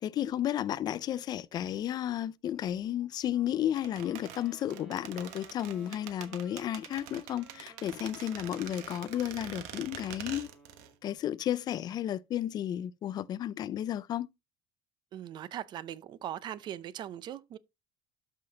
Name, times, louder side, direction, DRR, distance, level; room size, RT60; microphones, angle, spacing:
voice 1, 0.0-10.5 11.0-14.3, left 11 dB, 35° left, 0.4 m, -33 dB
Wind instrument woodwind instrument, 3.8-11.0, equal, 5° right, 2.2 m, -55 dB
sound 1, 3.8-10.9 11.2-11.3, right 11 dB, 80° right, 1.2 m, -45 dB
voice 2, 15.1-17.6, right 11 dB, 40° right, 0.5 m, -40 dB
12.5 x 5.8 x 2.7 m
cardioid pair, 155°, 12 cm